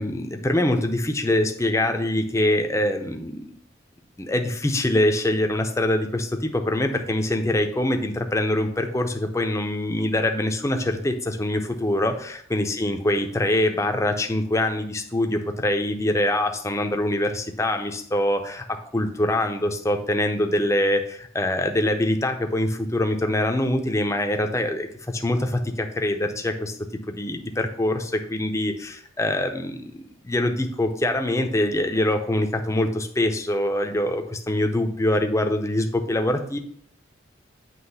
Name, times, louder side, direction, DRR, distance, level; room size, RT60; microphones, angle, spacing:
voice 1, 0.0-3.5 4.2-26.8 27.1-36.6, left 1 dB, 15° left, 5 dB, 0.5 m, -24 dB
7.8 x 3.1 x 5.6 m, 0.64 s
head